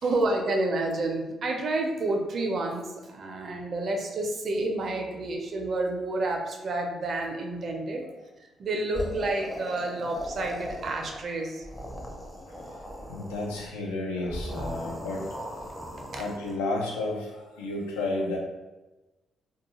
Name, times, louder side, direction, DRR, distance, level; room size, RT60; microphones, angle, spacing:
voice 1, 0.0-8.0 8.4-11.6 16.1-16.2, right 2 dB, 55° right, 2 dB, 0.5 m, -29 dB
sound 1, 8.9-11.2 11.6-13.7 14.2-16.5, equal, 15° left, 0.6 m, -38 dB
voice 2, 13.1-15.3 16.2-18.4, left 2 dB, 90° left, -2 dB, 0.5 m, -31 dB
2.3 x 2.2 x 2.9 m, 1.1 s
hypercardioid pair, 45°, 0 cm